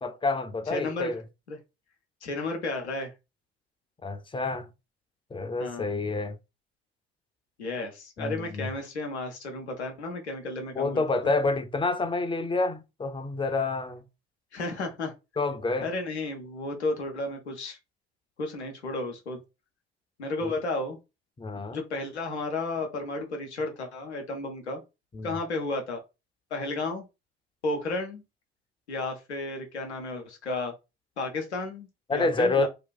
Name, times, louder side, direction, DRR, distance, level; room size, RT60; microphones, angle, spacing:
voice 1, 0.0-1.2 4.0-4.7 5.3-6.4 8.2-8.7 10.8-14.0 15.4-15.9 20.4-20.5 21.4-21.8 25.1-25.3 32.1-32.7, left 3 dB, 15° left, 0.5 m, -28 dB
voice 2, 0.7-1.2 1.5-1.6 2.2-3.1 5.6-5.9 7.6-11.3 14.5-15.1 15.8-17.8 18.4-19.4 20.2-21.0 21.7-24.8 25.2-26.0 26.5-27.0 27.6-28.2 28.9-30.7 31.2-32.7, left 2 dB, 85° left, 0.6 m, -33 dB
2.7 x 2.3 x 3.8 m
figure-of-eight pair, 50°, 33 cm